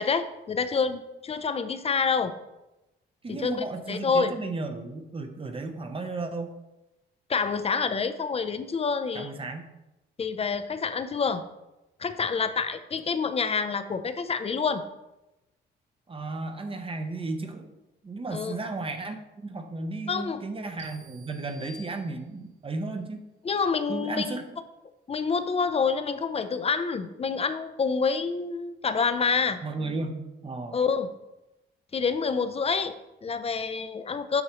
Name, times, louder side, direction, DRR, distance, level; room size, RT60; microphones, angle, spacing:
voice 1, 0.0-2.3 3.3-4.3 7.3-9.3 10.2-11.4 12.0-14.8 18.3-18.6 20.1-20.4 23.4-24.4 25.1-29.6 30.7-31.1 31.9-34.4, left 5 dB, 30° left, 10 dB, 0.5 m, -27 dB
voice 2, 3.2-6.5 9.1-9.7 16.1-17.7 18.0-23.2 23.9-24.6 29.6-30.2 30.4-30.8, right 3 dB, 25° right, 6 dB, 0.8 m, -34 dB
sound 1, 20.8-22.6, right 1 dB, 65° right, 1.4 m, -51 dB
7.8 x 5.4 x 3.0 m, 0.96 s
cardioid pair, 90°, 20 cm